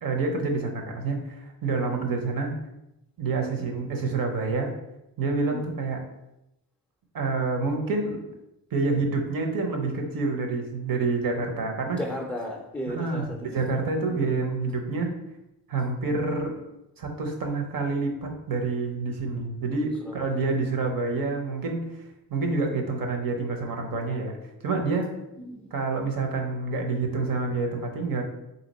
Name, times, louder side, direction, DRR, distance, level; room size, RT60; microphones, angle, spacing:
voice 1, 0.0-2.5 3.2-4.7 5.2-6.0 7.1-8.2 8.7-12.0 12.9-15.1 15.7-16.6 17.0-21.8 22.3-24.4 24.6-25.1 25.7-28.2, right 3 dB, 55° right, 3 dB, 0.8 m, -28 dB
voice 2, 11.9-13.6 14.1-14.2 20.1-20.3 25.4-25.7, equal, 5° left, -3 dB, 0.3 m, -35 dB
3.2 x 2.8 x 4.1 m, 0.88 s
wide cardioid pair, 140°, 41 cm